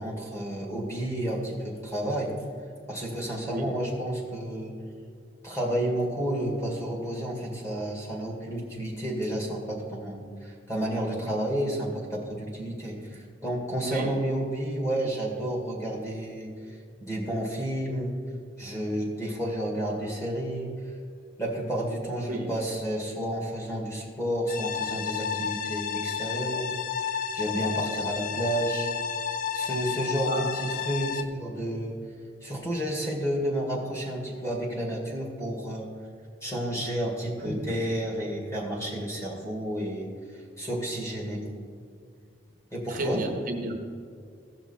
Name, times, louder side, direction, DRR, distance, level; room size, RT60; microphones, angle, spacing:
voice 1, 0.0-2.3 2.9-4.7 5.4-16.5 17.0-18.1 18.6-20.7 21.4-26.7 27.0-28.9 29.5-32.0 32.4-35.9 36.4-40.1 40.6-41.4 42.7-43.2, right 1 dB, 15° left, -1 dB, 2.0 m, -31 dB
voice 2, 13.8-14.2 22.2-22.5 30.3-30.5 37.4-37.7 42.9-43.8, right 1 dB, 45° right, 3 dB, 0.9 m, -32 dB
sound 1, 24.5-31.2, left 7 dB, 50° left, 0.4 m, -31 dB
15.5 x 5.9 x 4.3 m, 2.2 s
head